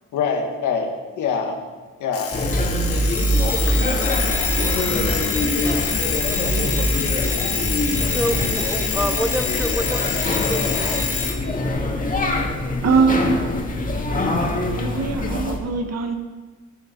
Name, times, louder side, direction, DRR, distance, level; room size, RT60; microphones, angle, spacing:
voice 1, 0.1-1.6 2.0-2.3, left 5 dB, 80° left, 2 dB, 1.8 m, -25 dB
Alarm, 2.1-11.4, left 6 dB, 50° left, 1.5 m, -26 dB
sound 1, 2.3-15.6, left 1 dB, 25° left, 1.7 m, -23 dB
voice 2, 8.0-11.0, equal, 5° right, 6 dB, 1.0 m, -28 dB
voice 3, 12.8-13.5 14.8-16.1, right 4 dB, 55° right, 6 dB, 1.4 m, -21 dB
12.5 x 8.1 x 4.5 m, 1.4 s
cardioid pair, 90°, 30 cm